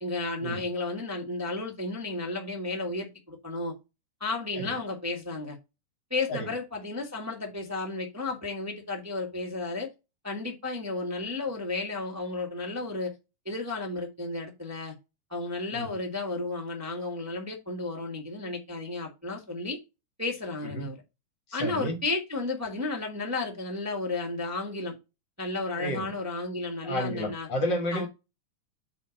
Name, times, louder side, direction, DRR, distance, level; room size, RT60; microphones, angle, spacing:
voice 1, 0.0-3.7 4.2-5.6 6.1-9.9 10.2-13.1 13.4-14.9 15.3-19.8 20.2-21.0 21.5-24.9 25.4-27.5 27.9-28.1, left 3 dB, 10° right, 0.9 m, -33 dB
voice 2, 21.5-21.9 25.8-26.1 26.8-28.1, equal, 50° left, 1.6 m, -31 dB
8.2 x 2.9 x 6.3 m
omnidirectional pair, 3.4 m